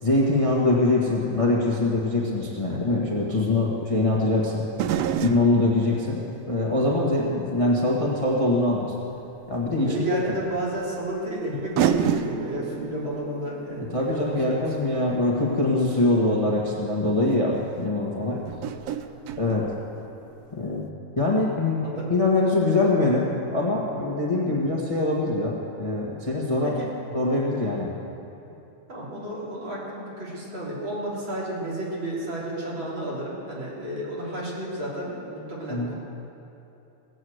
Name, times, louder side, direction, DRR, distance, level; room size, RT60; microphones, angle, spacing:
voice 1, 0.0-4.7 5.2-8.9 9.5-10.0 11.5-11.6 13.8-18.4 19.3-19.7 20.5-20.9 21.2-26.8 27.1-27.9 35.7-35.9, left 2 dB, 50° left, -3 dB, 0.3 m, -23 dB
sound 1, 2.6-2.7 4.7-7.7 8.2-8.3 9.8-9.9 11.1-11.2 11.8-15.9 16.8-16.9 17.2-17.4 18.5-20.4 20.6-20.7, right 9 dB, 85° right, 1.4 m, -31 dB
voice 2, 9.7-14.9 18.3-18.5 21.8-22.1 26.6-26.9 28.9-35.9, right 1 dB, 40° right, -6 dB, 3.8 m, -32 dB
19.0 x 8.1 x 7.8 m, 2.9 s
omnidirectional pair, 3.5 m